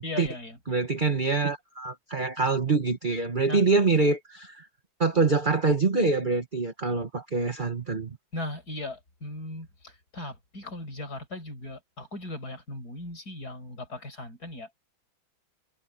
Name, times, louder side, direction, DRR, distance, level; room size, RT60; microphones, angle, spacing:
voice 1, 0.0-0.6 3.5-3.6 8.3-14.7, left 2 dB, 50° left, 6.1 m, -38 dB
voice 2, 0.7-4.7 5.0-8.1, right 4 dB, 25° right, 1.5 m, -25 dB
omnidirectional pair, 2.1 m